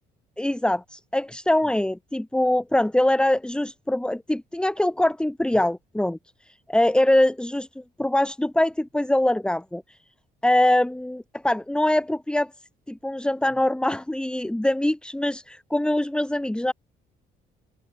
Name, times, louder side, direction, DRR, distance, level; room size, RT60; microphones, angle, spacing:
voice 1, 0.4-6.2 6.7-9.8 10.4-12.5 12.9-16.7, left 1 dB, 5° left, 3.5 m, -23 dB
open air
cardioid pair, 110°, 17 cm